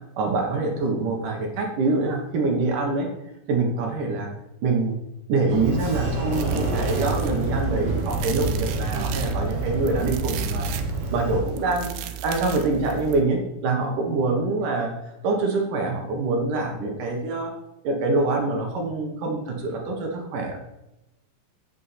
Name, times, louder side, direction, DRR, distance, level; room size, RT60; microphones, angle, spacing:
voice 1, 0.2-3.1 3.5-4.3 4.6-5.0 5.3-10.7 11.1-17.5 17.8-20.7, right 3 dB, 65° right, 2 dB, 2.4 m, -25 dB
Sliding door, 5.5-11.4, right 2 dB, 30° right, 4.2 m, -27 dB
sound 1, 6.3-13.2, right 10 dB, 85° right, 2.7 m, -35 dB
8.3 x 7.8 x 4.1 m, 0.94 s
omnidirectional pair, 4.4 m